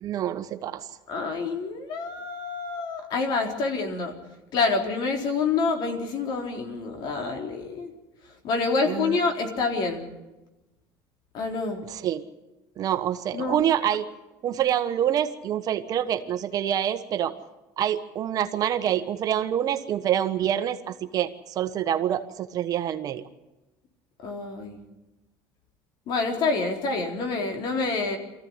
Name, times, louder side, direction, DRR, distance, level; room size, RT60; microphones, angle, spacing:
voice 1, 0.0-0.9 8.8-9.2 11.9-12.2 12.8-14.0 14.4-17.4 17.8-23.2, right 10 dB, 45° right, 9 dB, 1.3 m, -26 dB
voice 2, 1.1-4.2 4.5-7.9 8.4-10.1 11.3-11.8 13.3-13.6 24.2-24.8 26.1-28.2, left 4 dB, 55° left, 3 dB, 3.9 m, -27 dB
23.5 x 15.0 x 9.8 m, 1.0 s
cardioid pair, 130°, 9 cm